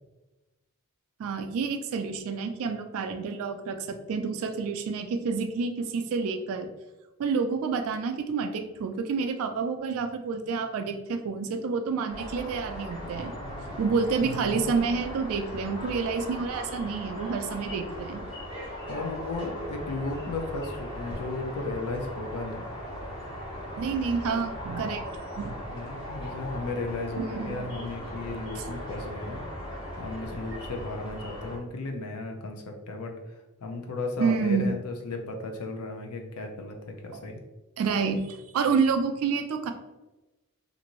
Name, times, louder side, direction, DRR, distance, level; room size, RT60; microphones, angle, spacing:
voice 1, 1.2-6.7 7.2-13.3 13.8-18.2 23.8-25.6 27.2-27.6 28.6-28.7 34.2-34.8 37.8-39.7, right 5 dB, 65° right, 7 dB, 0.3 m, -29 dB
sound 1, 12.1-31.6, equal, 20° left, 1.3 m, -38 dB
voice 2, 13.4-13.8 18.9-22.7 25.7-29.4 30.0-33.2 33.6-37.4, left 3 dB, 75° left, 3 dB, 0.5 m, -35 dB
2.6 x 2.5 x 2.9 m, 1.1 s
head